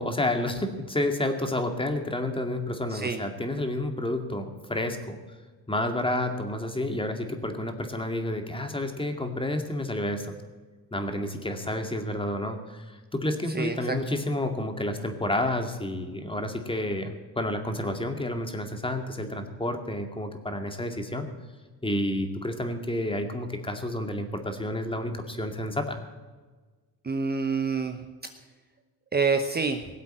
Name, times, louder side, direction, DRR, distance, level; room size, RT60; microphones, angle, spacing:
voice 1, 0.0-5.2 5.7-10.4 10.9-21.3 21.8-26.0, left 1 dB, 15° left, 5 dB, 2.2 m, -30 dB
voice 2, 2.9-3.2 13.5-14.0 27.0-28.0 29.1-29.9, right 4 dB, 25° right, 6 dB, 1.0 m, -27 dB
19.0 x 8.1 x 7.7 m, 1.4 s
cardioid pair, 100°, 39 cm